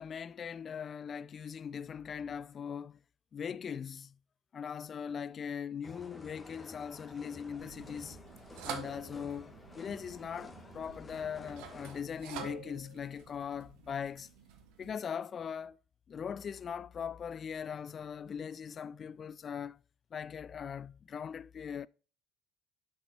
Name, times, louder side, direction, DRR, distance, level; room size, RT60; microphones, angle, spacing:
voice 1, 0.0-3.0 3.3-4.1 4.5-8.2 8.6-14.3 14.8-15.8 16.1-19.8 20.1-21.9, left 7 dB, 40° left, 0.3 m, -40 dB
sound 1, 5.8-12.0, left 2 dB, 20° left, 1.5 m, -52 dB
sound 2, 7.6-14.9, right 7 dB, 65° right, 1.0 m, -48 dB
6.8 x 5.7 x 2.9 m
figure-of-eight pair, 55°, 0 cm